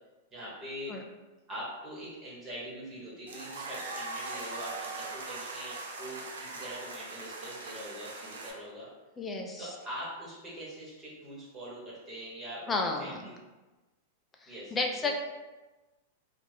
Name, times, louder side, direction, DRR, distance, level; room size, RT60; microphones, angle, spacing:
voice 1, 0.3-1.0 1.5-8.9 9.6-12.6 13.0-13.4 14.5-15.1, equal, 20° right, -7 dB, 1.0 m, -43 dB
sound 1, 3.3-8.5, right 3 dB, 90° right, 0.5 m, -40 dB
voice 2, 9.2-9.7 12.7-13.2 14.4-15.1, left 3 dB, 15° left, 2 dB, 0.3 m, -32 dB
2.3 x 2.1 x 3.3 m, 1.2 s
hypercardioid pair, 125°, 0 cm